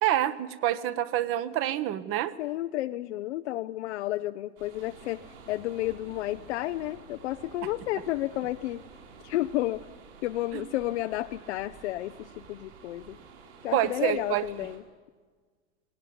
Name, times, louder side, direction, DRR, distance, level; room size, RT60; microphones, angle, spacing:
voice 1, 0.0-2.3 10.5-10.6 13.7-14.5, right 12 dB, 40° right, 14 dB, 1.1 m, -27 dB
voice 2, 2.4-8.8 9.2-9.9 10.2-13.2 13.6-14.8, left 16 dB, 70° left, 9 dB, 0.7 m, -32 dB
sound 1, 4.6-14.8, right 5 dB, 70° right, 6.5 m, -50 dB
19.0 x 18.5 x 8.7 m, 1.5 s
hypercardioid pair, 125°, 35 cm